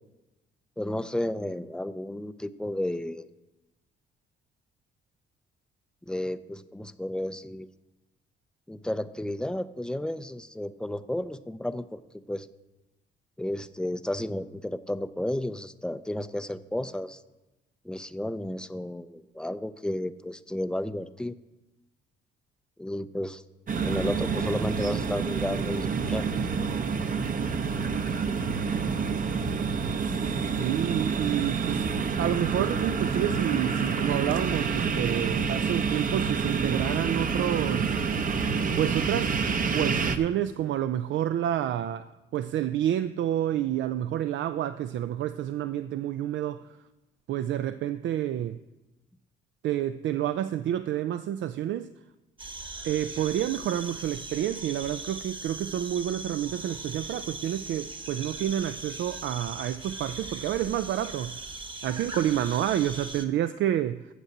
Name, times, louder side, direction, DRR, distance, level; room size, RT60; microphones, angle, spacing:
voice 1, 0.8-3.3 6.1-7.7 8.7-12.0 12.3-12.5 13.4-17.2 17.8-21.4 22.8-23.4 23.8-26.4, left 1 dB, 5° left, 0.5 m, -32 dB
sound 1, 23.7-40.2, right 5 dB, 45° right, 0.8 m, -28 dB
voice 2, 30.0-38.1 38.8-39.4 39.7-46.8 47.3-48.6 49.6-51.9 52.8-61.4 61.8-64.1, right 11 dB, 70° right, 0.4 m, -29 dB
sound 2, 52.4-63.2, right 2 dB, 25° right, 1.1 m, -40 dB
8.2 x 7.3 x 7.7 m
cardioid pair, 90°, 20 cm